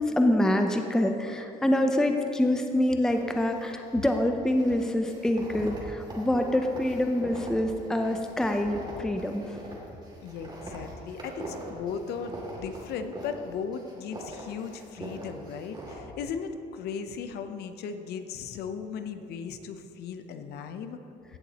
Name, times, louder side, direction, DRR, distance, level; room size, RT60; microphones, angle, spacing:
voice 1, 0.0-9.6, left 1 dB, 5° left, 5 dB, 0.5 m, -26 dB
sound 1, 3.0-4.2 4.4-13.5 13.7-16.0, right 1 dB, 25° right, 2.4 m, -42 dB
voice 2, 10.2-21.0, left 6 dB, 75° left, 8 dB, 0.7 m, -37 dB
16.0 x 7.1 x 2.9 m, 2.7 s
cardioid pair, 110°, 17 cm